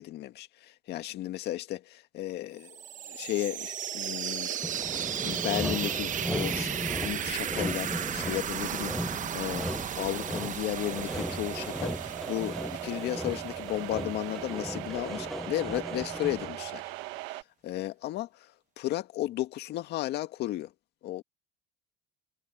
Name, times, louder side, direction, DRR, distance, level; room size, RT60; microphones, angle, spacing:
voice 1, 0.0-4.5 5.2-16.9 17.6-18.3 18.8-20.7 21.0-21.2, left 15 dB, 65° left, 2.0 m, -34 dB
sound 1, 2.6-14.3, right 9 dB, 45° right, 1.0 m, -35 dB
Sawing, 4.6-16.7, equal, ahead, 0.3 m, -37 dB
sound 2, 10.7-17.4, right 20 dB, 85° right, 1.4 m, -40 dB
supercardioid pair, 95°, 18 cm